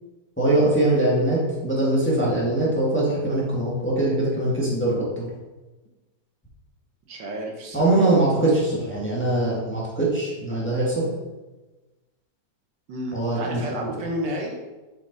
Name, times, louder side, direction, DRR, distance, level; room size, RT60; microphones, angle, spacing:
voice 1, 0.4-5.3 7.7-11.0 13.1-13.6, right 2 dB, 5° left, -6 dB, 1.4 m, -22 dB
voice 2, 7.1-8.1 12.9-14.5, right 1 dB, 90° right, 1 dB, 1.8 m, -31 dB
5.8 x 5.1 x 4.0 m, 1.2 s
omnidirectional pair, 1.9 m